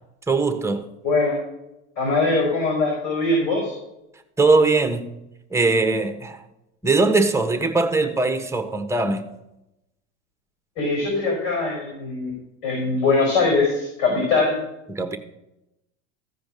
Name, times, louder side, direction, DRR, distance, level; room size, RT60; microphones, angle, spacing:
voice 1, 0.3-0.9 4.4-5.2 5.5-6.4 6.8-9.2 14.9-15.2, right 3 dB, 10° right, 1.2 m, -21 dB
voice 2, 1.0-1.3 2.0-3.7 10.8-12.3 12.6-14.5, left 3 dB, 70° left, 5.1 m, -21 dB
15.0 x 5.1 x 6.3 m
hypercardioid pair, 95°, 35 cm